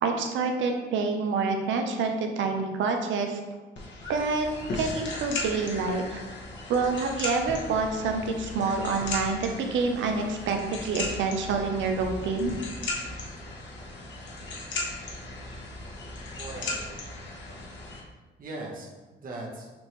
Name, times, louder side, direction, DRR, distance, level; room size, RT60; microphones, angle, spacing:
voice 1, 0.0-3.4 4.1-4.5 4.7-6.2 6.7-12.6, right 4 dB, 75° right, 4 dB, 0.7 m, -27 dB
sound 1, 3.8-18.0, left 2 dB, 65° left, 1.0 m, -37 dB
voice 2, 16.4-17.1 18.4-19.7, right 2 dB, 45° right, -3 dB, 1.0 m, -40 dB
6.1 x 2.6 x 3.1 m, 1.2 s
cardioid pair, 90°, 20 cm